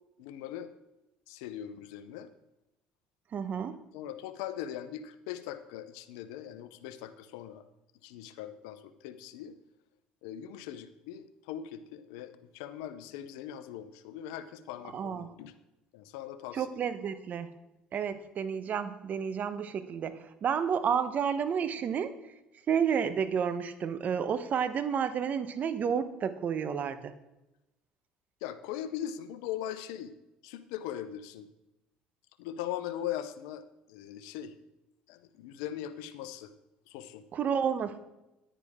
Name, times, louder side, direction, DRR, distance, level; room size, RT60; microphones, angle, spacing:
voice 1, 0.2-0.7 1.3-2.3 3.9-7.6 8.0-9.6 10.2-15.5 15.9-16.7 28.4-30.1 30.4-31.5 32.4-33.6 33.9-34.5 35.1-36.5 36.9-37.2, left 11 dB, 85° left, 11 dB, 0.7 m, -40 dB
voice 2, 3.3-3.8 14.9-15.3 16.5-17.5 17.9-22.1 22.7-27.1 37.3-38.0, right 7 dB, 50° right, 12 dB, 1.0 m, -31 dB
9.9 x 9.8 x 3.6 m, 0.94 s
supercardioid pair, 80°, 4 cm